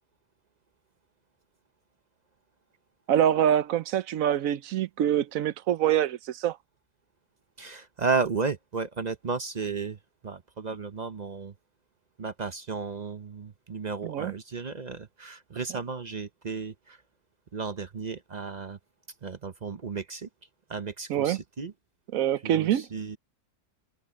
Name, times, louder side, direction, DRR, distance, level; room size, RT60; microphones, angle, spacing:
voice 1, 3.1-6.6 14.0-14.3 21.1-21.4 22.1-22.9, right 10 dB, 70° right, 1.0 m, -25 dB
voice 2, 7.6-11.5 12.2-17.0 17.5-18.8 19.2-20.3 20.7-21.7 22.4-23.2, right 4 dB, 40° right, 0.6 m, -33 dB
omnidirectional pair, 1.6 m